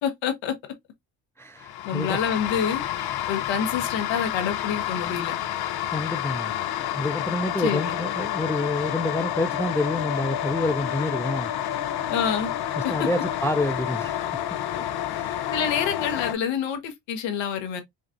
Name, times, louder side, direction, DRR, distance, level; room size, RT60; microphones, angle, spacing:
voice 1, 0.0-0.6 1.8-2.8 3.3-5.3 7.6-7.9 12.1-12.5 12.8-13.1 15.5-17.8, left 7 dB, 75° left, 1.3 m, -27 dB
voice 2, 1.4-2.2 5.9-6.5 6.9-11.8 12.8-14.3 14.8-14.9, left 2 dB, 5° left, 0.3 m, -28 dB
sound 1, 1.6-16.3, left 11 dB, 60° left, 0.7 m, -29 dB
5.2 x 2.4 x 2.5 m
supercardioid pair, 70°, 44 cm